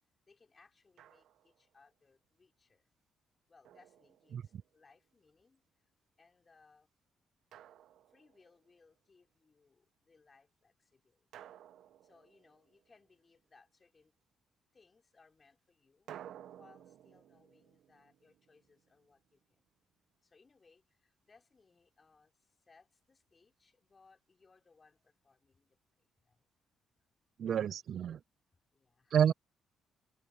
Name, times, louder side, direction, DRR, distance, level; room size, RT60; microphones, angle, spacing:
voice 1, 0.3-2.9 3.5-5.6 6.2-6.9 8.1-11.2 12.0-14.1 14.7-16.1 16.5-19.6 20.2-22.3 22.7-25.8 26.2-26.4 28.7-29.2, left 4 dB, 30° left, 4.8 m, -67 dB
Drum, 1.0-1.7 3.6-4.7 7.5-8.7 11.3-13.0 16.1-19.0, right 11 dB, 75° right, 1.3 m, -55 dB
voice 2, 27.4-28.2 29.1-29.3, right 9 dB, 60° right, 0.5 m, -29 dB
cardioid pair, 90°, 0 cm